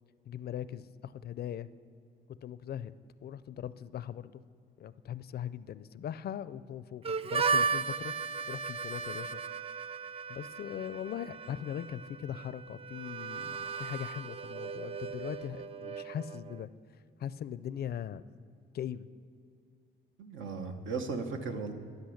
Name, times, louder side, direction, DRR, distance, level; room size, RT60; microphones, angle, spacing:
voice 1, 0.3-1.7 2.4-2.9 3.2-4.4 4.8-8.1 8.5-9.4 10.3-16.7 17.2-18.2 18.7-19.1, left 9 dB, 55° left, 16 dB, 0.4 m, -40 dB
Harmonica, 7.0-16.7, right 5 dB, 30° right, 0.4 m, -36 dB
voice 2, 20.2-21.7, right 4 dB, 75° right, 5 dB, 1.2 m, -36 dB
13.5 x 8.1 x 6.5 m, 2.4 s
cardioid pair, 90°, 20 cm